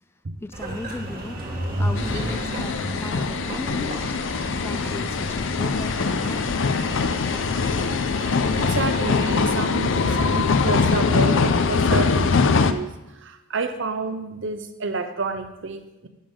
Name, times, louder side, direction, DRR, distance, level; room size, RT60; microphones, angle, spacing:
voice 1, 0.4-1.4 1.8-4.0 4.5-6.8, left 2 dB, 10° left, 10 dB, 0.3 m, -36 dB
Engine, 0.5-9.5, right 1 dB, 45° right, 1.6 m, -33 dB
sound 1, 2.0-12.7, left 4 dB, 65° left, 0.5 m, -22 dB
voice 2, 8.6-12.9 13.2-16.1, right 3 dB, 65° right, 8 dB, 0.9 m, -29 dB
10.5 x 7.2 x 3.7 m, 0.97 s
head